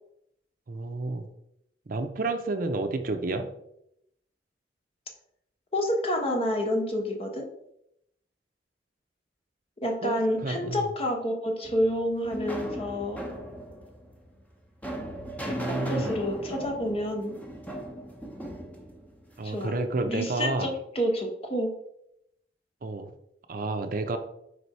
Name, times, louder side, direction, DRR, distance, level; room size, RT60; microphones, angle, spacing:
voice 1, 0.7-1.3 1.9-3.5 10.0-10.8 15.4-16.1 19.4-20.7 22.8-23.1 23.5-24.2, right 2 dB, 50° right, 7 dB, 0.6 m, -30 dB
voice 2, 5.7-7.5 9.8-13.2 15.4-17.4 19.4-19.8 20.1-21.7, equal, 35° left, 2 dB, 1.1 m, -29 dB
sound 1, 11.6-19.8, right 1 dB, 10° left, 0.9 m, -38 dB
5.0 x 4.7 x 4.1 m, 0.78 s
head